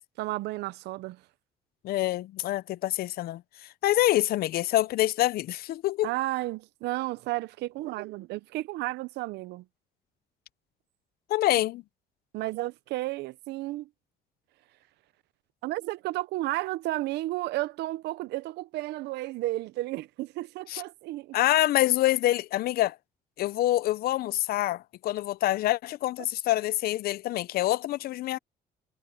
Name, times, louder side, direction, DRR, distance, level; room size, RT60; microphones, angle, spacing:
voice 1, 0.2-1.2 6.0-9.6 12.3-13.9 15.6-21.4, right 18 dB, 80° right, 0.7 m, -32 dB
voice 2, 1.8-3.4 3.8-6.1 11.3-11.8 20.7-20.8 21.3-23.0 23.4-28.4, left 15 dB, 65° left, 0.5 m, -26 dB
cardioid pair, 110°, 17 cm